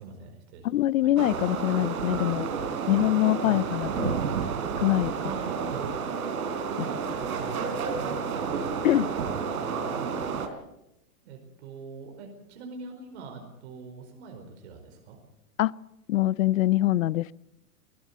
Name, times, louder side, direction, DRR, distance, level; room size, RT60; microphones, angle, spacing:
voice 1, 0.0-1.1 3.3-3.8 5.2-6.0 6.8-10.4 11.2-15.2, right 4 dB, 45° right, 4 dB, 4.8 m, -43 dB
voice 2, 0.6-2.5 2.9-4.1 4.8-5.1 8.8-9.1 15.6-15.8 16.1-17.3, left 15 dB, 60° left, 22 dB, 0.7 m, -24 dB
sound 1, 1.2-10.5, right 6 dB, 75° right, 4.0 m, -31 dB
21.0 x 18.0 x 8.2 m, 0.89 s
supercardioid pair, 175°, 45 cm